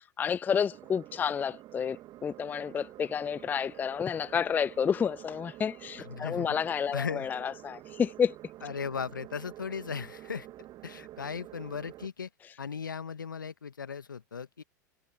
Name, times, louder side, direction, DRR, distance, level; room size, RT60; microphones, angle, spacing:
voice 1, 0.0-2.0 2.2-8.3, left 7 dB, 15° left, 0.3 m, -30 dB
sound 1, 0.7-12.1, right 15 dB, 40° right, 1.6 m, -49 dB
voice 2, 6.0-6.6 6.9-7.3 8.6-10.5 10.8-12.3 12.6-14.6, left 6 dB, 85° left, 1.4 m, -37 dB
figure-of-eight pair, 85°, 10 cm